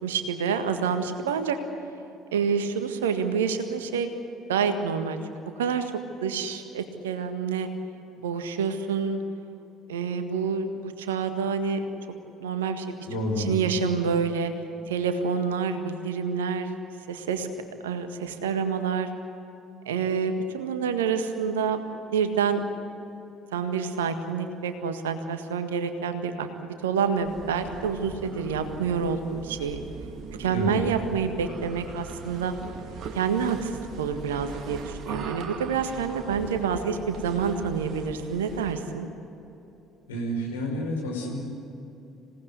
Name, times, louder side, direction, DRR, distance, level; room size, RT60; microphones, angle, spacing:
voice 1, 0.0-1.6 2.3-4.1 4.5-5.9 6.2-7.7 8.2-9.2 9.9-11.8 12.4-13.0 13.4-14.5 14.9-16.7 17.1-17.5 17.8-19.1 19.8-21.8 22.1-22.6 23.5-29.8 30.4-32.5 33.1-39.1, right 6 dB, 75° right, 8 dB, 1.7 m, -28 dB
voice 2, 13.1-13.5 30.5-30.8 40.1-41.4, equal, 75° left, -1 dB, 5.5 m, -29 dB
sound 1, 27.1-38.9, right 5 dB, 50° right, 2.0 m, -40 dB
26.5 x 18.0 x 8.3 m, 2.9 s
figure-of-eight pair, 55°, 0 cm